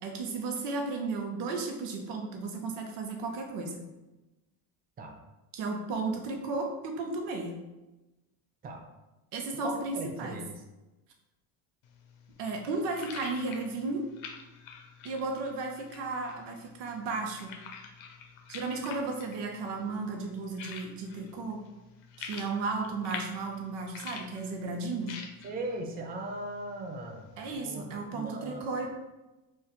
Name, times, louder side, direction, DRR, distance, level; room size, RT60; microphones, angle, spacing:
voice 1, 0.0-3.8 5.5-7.6 9.3-10.4 12.4-14.0 15.0-17.5 18.5-21.6 22.2-25.2 27.4-28.9, right 3 dB, 85° right, 2 dB, 0.8 m, -34 dB
voice 2, 9.5-10.6 25.4-28.7, right 2 dB, 20° right, 2 dB, 0.5 m, -39 dB
sound 1, 11.8-27.6, left 6 dB, 75° left, 0.6 m, -48 dB
2.5 x 2.4 x 4.0 m, 1.0 s
supercardioid pair, 75°, 49 cm